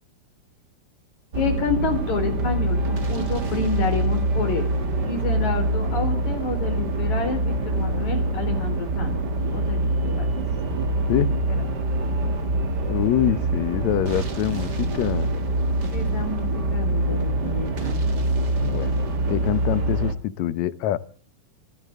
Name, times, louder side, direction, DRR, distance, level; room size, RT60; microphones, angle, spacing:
voice 1, 1.3-4.8 5.0-9.2 9.5-10.3 13.0-13.2 15.7-18.0, left 4 dB, 45° left, 4 dB, 5.4 m, -29 dB
sound 1, 1.3-20.1, right 2 dB, 45° right, 1.4 m, -25 dB
voice 2, 12.9-15.3 18.6-19.0 19.3-21.0, left 12 dB, 85° left, 14 dB, 1.5 m, -25 dB
27.0 x 13.5 x 3.7 m, 0.42 s
omnidirectional pair, 4.6 m